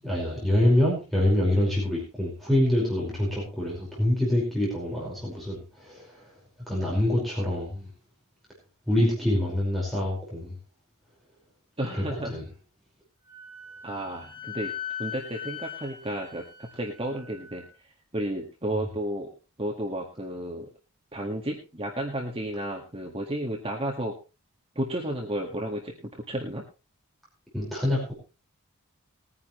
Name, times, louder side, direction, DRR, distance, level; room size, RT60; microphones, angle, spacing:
voice 1, 0.0-6.3 6.7-7.9 8.9-10.5 12.3-12.4 27.5-28.1, left 1 dB, ahead, -5 dB, 5.2 m, -25 dB
voice 2, 11.8-12.4 13.8-14.7 15.0-19.3 19.6-20.7 21.1-24.1 24.7-26.6, right 1 dB, 25° right, 0 dB, 1.8 m, -32 dB
Wind instrument woodwind instrument, 13.2-17.7, left 9 dB, 25° left, 7.3 m, -40 dB
20.5 x 9.8 x 3.2 m, 0.32 s
head